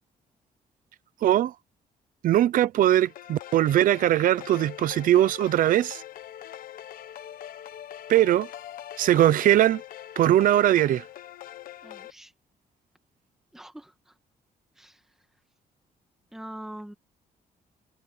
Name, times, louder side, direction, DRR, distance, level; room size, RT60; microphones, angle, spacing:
voice 1, 1.2-1.5 2.2-6.0 8.1-8.5 9.0-9.8 10.2-11.0, right 12 dB, 70° right, 0.7 m, -20 dB
sound 1, 2.9-12.1, left 12 dB, 80° left, 1.1 m, -42 dB
voice 2, 11.8-12.3 13.5-14.2 14.8-15.1 16.3-16.9, right 1 dB, 5° right, 1.9 m, -43 dB
cardioid pair, 170°, 15 cm